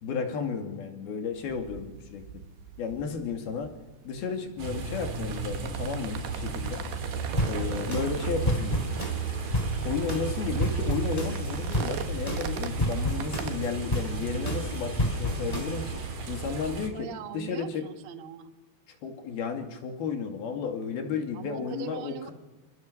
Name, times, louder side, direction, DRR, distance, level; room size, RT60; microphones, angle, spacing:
voice 1, 0.0-2.2 2.8-3.7 4.0-6.8 7.4-9.0 9.8-16.0 16.3-17.1 17.3-17.8 19.0-22.3, left 6 dB, 70° left, 5 dB, 4.4 m, -33 dB
sound 1, 1.3-13.5, right 9 dB, 80° right, 3.3 m, -43 dB
sound 2, 4.6-16.9, right 5 dB, 45° right, 3.9 m, -33 dB
sound 3, 7.4-16.1, equal, 10° left, 3.3 m, -32 dB
voice 2, 16.9-18.5 21.3-22.3, right 10 dB, 60° right, 8 dB, 1.4 m, -41 dB
28.0 x 26.5 x 6.9 m, 1.2 s
omnidirectional pair, 4.6 m